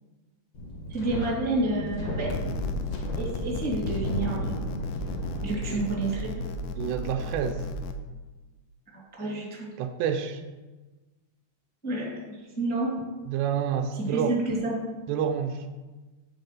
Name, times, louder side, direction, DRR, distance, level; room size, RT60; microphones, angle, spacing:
Wind, 0.5-6.2, equal, 55° left, 1.7 m, -35 dB
voice 1, 0.9-2.3 3.2-4.5 5.4-6.5 9.2-9.7 11.8-12.9 14.1-14.7, right 2 dB, 10° left, -5 dB, 0.8 m, -29 dB
sound 1, 2.3-7.9, left 2 dB, 80° left, 2.3 m, -34 dB
voice 2, 6.8-7.7 9.8-10.4 13.3-14.4 15.1-15.7, right 8 dB, 85° right, 7 dB, 2.6 m, -28 dB
9.0 x 4.2 x 6.7 m, 1.2 s
omnidirectional pair, 4.9 m